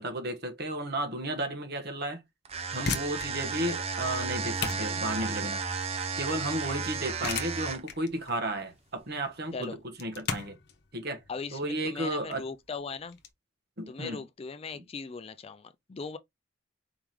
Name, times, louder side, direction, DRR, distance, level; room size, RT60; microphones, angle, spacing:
voice 1, 0.0-2.2 2.7-5.6 6.2-10.6 10.9-11.2 11.5-12.4 13.8-14.2, right 1 dB, 50° right, 1.3 m, -33 dB
sound 1, 2.5-13.3, left 5 dB, 55° left, 1.0 m, -39 dB
sound 2, 2.5-8.0, right 5 dB, 30° right, 0.7 m, -33 dB
voice 2, 11.3-13.2 13.9-16.2, left 4 dB, 30° left, 0.3 m, -39 dB
4.7 x 3.6 x 3.0 m
head